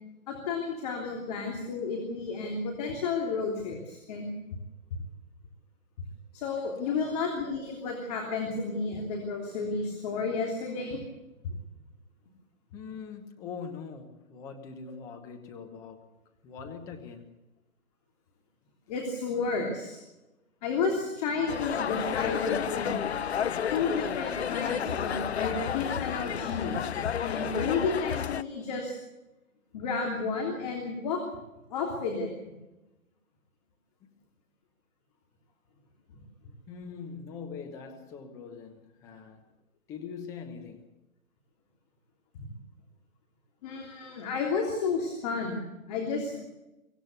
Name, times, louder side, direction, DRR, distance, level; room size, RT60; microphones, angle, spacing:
voice 1, 0.3-4.3 6.3-11.0 18.9-20.0 20.6-23.0 23.7-26.7 27.2-28.9 29.7-31.2 31.7-32.3 43.6-46.4, left 4 dB, 25° left, 3.3 m, -32 dB
voice 2, 12.7-16.1 16.4-17.3 36.7-39.4 39.9-40.9, left 6 dB, 5° left, 1.0 m, -42 dB
sound 1, 21.5-28.4, left 8 dB, 50° left, 0.7 m, -31 dB
24.0 x 16.5 x 8.2 m
hypercardioid pair, 155°, 43 cm